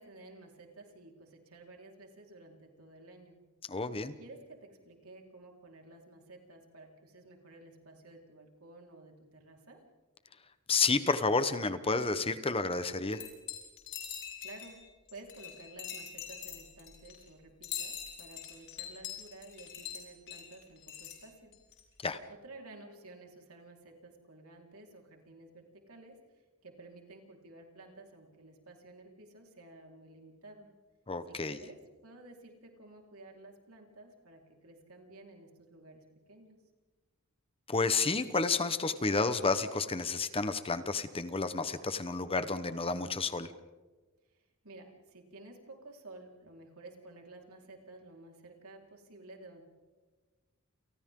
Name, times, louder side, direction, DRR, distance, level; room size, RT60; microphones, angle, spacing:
voice 1, 0.0-3.4 4.2-9.8 14.4-21.5 22.3-30.7 31.3-36.6 44.3-49.6, right 2 dB, 75° right, 1 dB, 4.5 m, -53 dB
voice 2, 3.7-4.1 10.7-13.2 22.0-22.2 31.1-31.6 37.7-43.5, left 4 dB, 25° left, 11 dB, 1.1 m, -30 dB
sound 1, 13.1-14.8 15.1-17.3 17.6-21.2 21.5-21.8 22.1-22.2, left 9 dB, 55° left, 7.0 m, -43 dB
29.5 x 29.0 x 3.8 m, 1.3 s
head